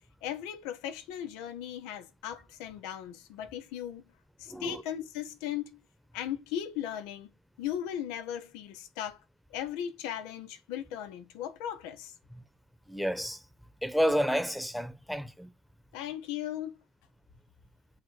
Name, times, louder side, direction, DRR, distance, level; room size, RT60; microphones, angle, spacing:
voice 1, 0.2-4.1 4.4-5.8 6.1-7.3 7.6-9.2 9.5-12.1 15.9-16.7, left 10 dB, 90° left, 0.9 m, -37 dB
voice 2, 4.5-4.8 12.9-13.4 13.8-15.5, equal, ahead, 1.0 m, -30 dB
7.6 x 3.0 x 4.7 m
supercardioid pair, 85°, 0 cm